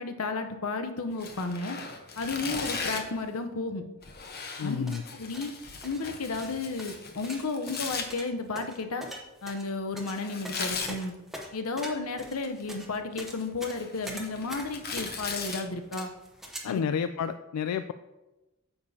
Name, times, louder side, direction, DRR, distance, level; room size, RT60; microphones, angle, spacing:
voice 1, 0.0-1.8 2.2-3.9 4.6-4.8 5.1-9.1 9.4-11.1 11.5-16.1 16.7-16.8, left 3 dB, 70° left, 7 dB, 0.8 m, -33 dB
Tearing, 1.2-3.2 4.0-8.1 10.2-10.9 12.2-12.8 13.1-15.6, left 5 dB, 45° left, 0.9 m, -38 dB
voice 2, 4.6-5.0 16.6-17.9, left 7 dB, 90° left, 10 dB, 0.3 m, -30 dB
sound 1, 4.7-16.6, equal, ahead, 0.9 m, -43 dB
9.5 x 6.8 x 2.8 m, 1.1 s
head